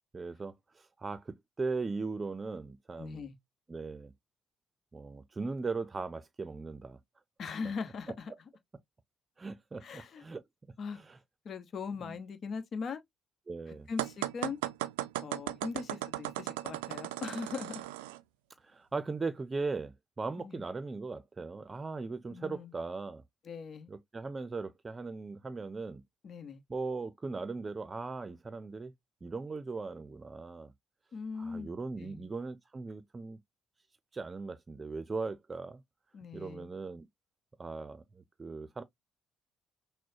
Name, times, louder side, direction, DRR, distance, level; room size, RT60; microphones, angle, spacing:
voice 1, 0.1-3.2 3.7-4.1 4.9-7.0 7.6-7.7 9.4-10.4 10.9-11.2 12.0-12.2 13.5-13.9 18.6-23.2 23.9-26.0 26.7-28.9 29.2-30.7 31.4-33.4 34.1-35.8 36.3-37.1 37.6-38.8, right 4 dB, 30° right, 0.6 m, -39 dB
voice 2, 3.0-3.3 7.4-8.3 9.8-10.2 10.8-11.0 11.4-13.0 13.7-14.6 15.2-17.8 20.4-20.7 22.3-22.7 23.4-23.9 26.2-26.6 31.1-32.3 36.1-36.7, left 5 dB, 50° left, 1.1 m, -40 dB
sound 1, 14.0-18.2, right 16 dB, 80° right, 0.3 m, -36 dB
6.1 x 2.1 x 2.7 m
hypercardioid pair, 45°, 0 cm